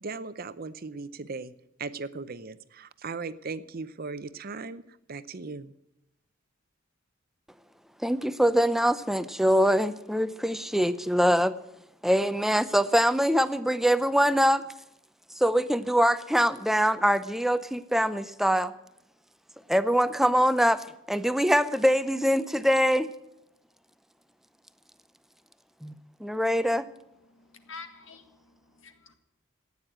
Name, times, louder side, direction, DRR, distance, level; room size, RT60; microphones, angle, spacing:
voice 1, 0.0-1.5 1.8-4.8 5.1-5.7, right 4 dB, 45° right, 0.7 m, -37 dB
voice 2, 8.0-11.6 12.0-14.6 15.3-18.7 19.7-23.1 25.8-25.9 26.2-26.9, equal, ahead, 0.6 m, -23 dB
voice 3, 27.3-29.2, left 4 dB, 65° left, 1.9 m, -47 dB
15.5 x 9.6 x 8.8 m
head